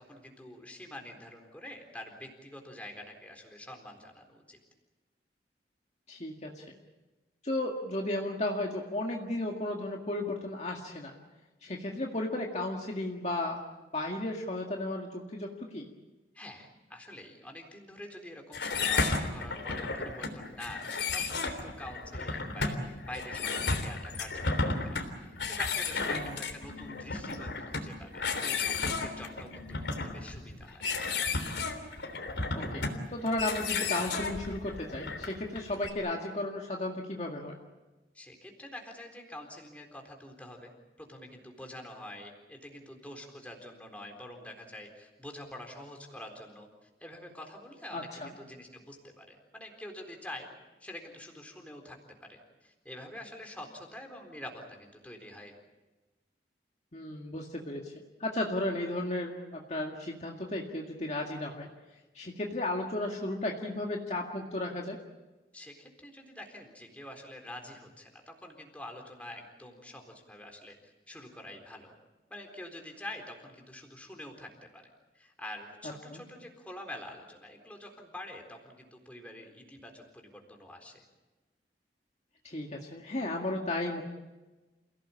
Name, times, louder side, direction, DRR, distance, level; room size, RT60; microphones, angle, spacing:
voice 1, 0.0-4.6 16.3-30.9 38.1-40.7 41.0-50.5 50.8-55.5 65.5-71.9 72.3-81.0, left 1 dB, 10° left, 2 dB, 4.0 m, -46 dB
voice 2, 6.1-6.7 7.4-11.1 11.6-13.6 13.9-15.9 26.0-26.4 32.5-37.5 47.9-48.3 56.9-57.9 58.2-61.7 62.1-65.0 76.1-76.2 82.4-84.0, left 1 dB, 40° left, 0 dB, 2.0 m, -34 dB
sound 1, 18.5-35.9, left 4 dB, 85° left, 3.5 m, -33 dB
28.5 x 17.5 x 8.7 m, 1.2 s
head